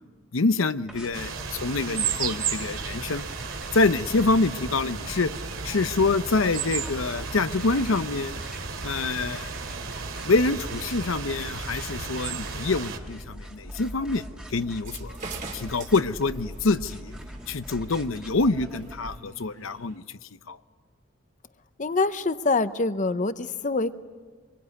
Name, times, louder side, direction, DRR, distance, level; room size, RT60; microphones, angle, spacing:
voice 1, 0.3-3.2 3.7-5.3 5.6-8.3 8.8-9.5 10.2-14.2 14.5-15.2 15.5-17.1 17.5-20.2 20.5-20.6, left 3 dB, 75° left, 12 dB, 0.7 m, -26 dB
sound 1, 0.9-19.2, equal, 5° right, 1.8 m, -43 dB
sound 2, 1.1-13.0, right 5 dB, 70° right, 2.8 m, -33 dB
sound 3, 14.7-20.0, right 3 dB, 40° right, 2.5 m, -44 dB
voice 2, 21.8-23.9, left 3 dB, 35° left, 12 dB, 0.7 m, -25 dB
26.0 x 23.0 x 9.6 m, 1.5 s
head